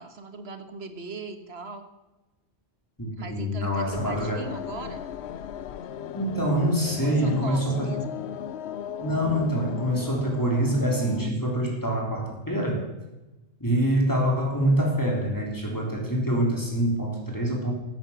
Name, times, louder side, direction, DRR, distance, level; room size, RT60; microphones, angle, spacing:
voice 1, 0.0-1.9 3.1-5.1 7.0-8.2, right 4 dB, 70° right, 8 dB, 1.6 m, -39 dB
voice 2, 3.0-4.4 6.1-7.9 9.0-12.9 13.6-17.7, right 1 dB, 15° left, 0 dB, 3.2 m, -25 dB
sound 1, 3.9-11.3, left 9 dB, 80° left, 0.9 m, -36 dB
12.0 x 9.3 x 7.1 m, 1.0 s
omnidirectional pair, 1.1 m